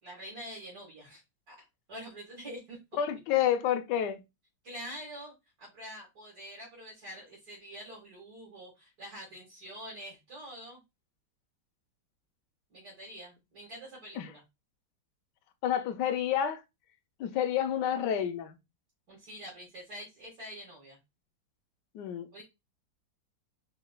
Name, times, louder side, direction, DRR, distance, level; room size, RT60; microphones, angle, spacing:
voice 1, 0.0-1.2 1.5-1.6 1.9-2.8 3.3-3.4 4.6-10.8 12.7-14.4 19.1-21.0 22.3-22.4, equal, 50° right, 2.0 m, -46 dB
voice 2, 3.0-4.2 14.2-14.3 15.6-16.6 17.2-18.6 21.9-22.4, left 10 dB, 70° left, 1.1 m, -29 dB
4.2 x 3.9 x 2.2 m
omnidirectional pair, 2.1 m